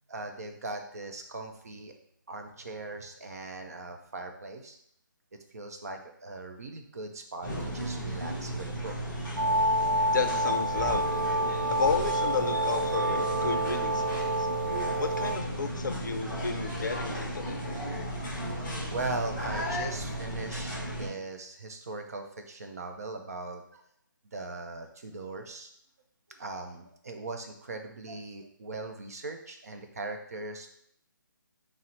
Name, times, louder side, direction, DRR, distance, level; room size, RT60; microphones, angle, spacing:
voice 1, 0.1-1.9 2.3-4.8 5.5-9.0 18.4-18.6 18.9-23.8 24.3-25.7 26.4-30.7, right 3 dB, 50° right, 6 dB, 0.5 m, -39 dB
sound 1, 7.4-21.1, right 1 dB, 10° left, 0.8 m, -35 dB
sound 2, 9.4-15.4, right 1 dB, 70° right, 0.8 m, -28 dB
voice 2, 10.1-11.2 11.7-14.5 15.0-17.8, left 4 dB, 65° left, 7 dB, 0.4 m, -32 dB
3.9 x 2.0 x 4.2 m, 0.68 s
hypercardioid pair, 170°, 11 cm